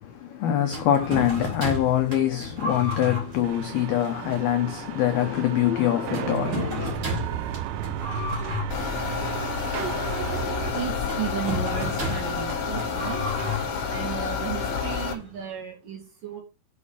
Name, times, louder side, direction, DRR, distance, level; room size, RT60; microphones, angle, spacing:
voice 1, 0.0-7.0, left 11 dB, 80° left, 2.2 m, -24 dB
sound 1, 0.7-15.4, left 1 dB, 30° right, 3.4 m, -34 dB
sound 2, 3.4-10.7, right 12 dB, 85° right, 3.3 m, -34 dB
sound 3, 8.7-15.1, left 6 dB, 55° left, 3.5 m, -29 dB
voice 2, 10.7-13.2 13.9-16.4, right 9 dB, 50° right, 3.1 m, -34 dB
8.2 x 6.2 x 5.6 m
omnidirectional pair, 5.8 m